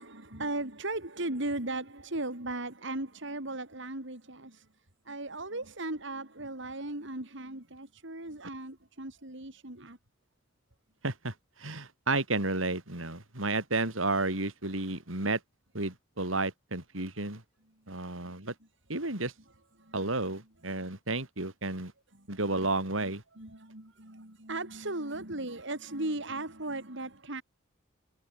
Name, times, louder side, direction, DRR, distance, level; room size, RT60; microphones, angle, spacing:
voice 1, 0.0-4.7 5.0-10.0 19.8-20.0 22.1-22.6 23.0-27.4, right 2 dB, 65° right, 4.6 m, -37 dB
voice 2, 11.0-11.3 11.6-15.4 15.7-17.4 17.9-18.5 18.9-19.3 19.9-21.9 22.3-23.2, right 2 dB, 85° right, 5.3 m, -32 dB
head